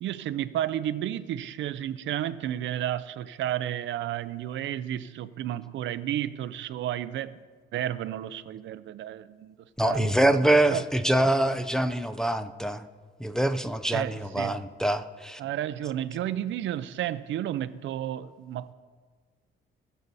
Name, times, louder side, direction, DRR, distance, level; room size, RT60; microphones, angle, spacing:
voice 1, 0.0-7.4 7.7-9.5 9.8-10.1 10.7-10.9 13.9-14.6 15.4-18.7, right 11 dB, 70° right, 0.5 m, -32 dB
voice 2, 9.8-12.8 13.2-15.4, right 1 dB, 5° left, 0.5 m, -25 dB
20.0 x 6.7 x 4.1 m
cardioid pair, 115°, 20 cm